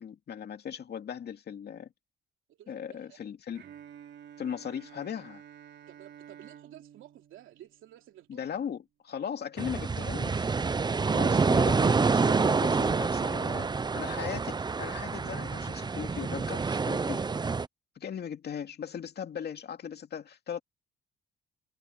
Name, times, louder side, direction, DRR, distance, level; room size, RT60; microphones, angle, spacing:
voice 1, 0.0-1.9 2.7-3.6 4.4-5.4 8.3-10.5 11.1-13.7 14.0-17.2 18.0-20.6, left 8 dB, 55° left, 2.4 m, -38 dB
voice 2, 2.5-3.2 5.9-8.6, right 13 dB, 85° right, 2.9 m, -53 dB
Bowed string instrument, 3.6-8.4, right 9 dB, 60° right, 3.9 m, -51 dB
sound 1, 9.6-17.7, right 4 dB, 20° right, 0.6 m, -27 dB
cardioid pair, 90°, 20 cm